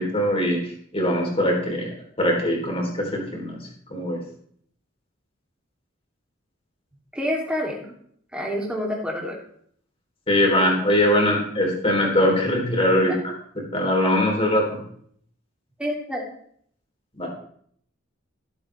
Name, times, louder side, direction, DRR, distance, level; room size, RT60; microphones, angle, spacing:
voice 1, 0.0-1.9 2.2-3.6 3.9-4.2 10.3-13.1 13.7-14.8 17.2-17.3, left 1 dB, 30° left, -1 dB, 3.4 m, -21 dB
voice 2, 7.1-7.9 8.3-9.4 12.9-13.2 15.8-16.2, equal, 5° right, -2 dB, 2.9 m, -28 dB
16.5 x 8.0 x 3.4 m, 0.64 s
head